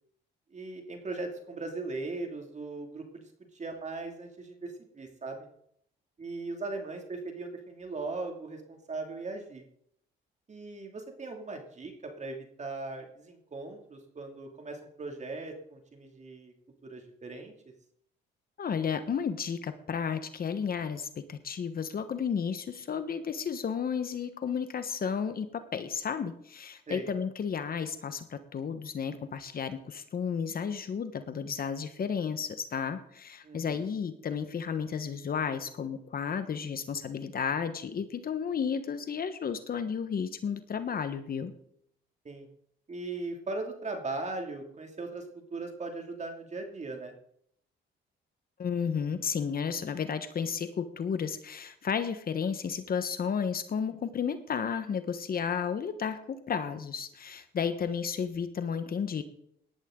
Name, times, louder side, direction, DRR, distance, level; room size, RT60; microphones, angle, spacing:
voice 1, 0.5-5.5 6.2-9.6 10.5-16.5 16.8-17.5 26.9-27.1 33.4-33.8 42.2-42.5 42.9-45.2 45.5-47.1, right 3 dB, 35° right, 3 dB, 2.7 m, -39 dB
voice 2, 18.6-41.5 48.6-59.2, left 6 dB, 50° left, 10 dB, 1.2 m, -33 dB
18.0 x 12.0 x 3.9 m, 0.69 s
cardioid pair, 90°, 20 cm